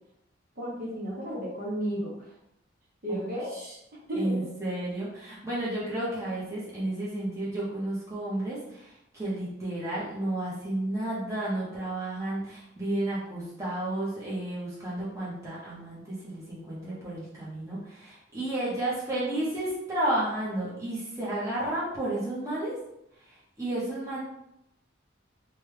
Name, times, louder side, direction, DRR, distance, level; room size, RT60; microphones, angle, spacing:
voice 1, 0.6-2.3 3.0-3.6 4.1-4.4, equal, 45° right, -6 dB, 0.9 m, -33 dB
voice 2, 3.1-3.7 4.2-22.7 23.3-24.2, right 1 dB, 15° right, -9 dB, 0.9 m, -32 dB
3.0 x 2.3 x 3.3 m, 0.83 s
head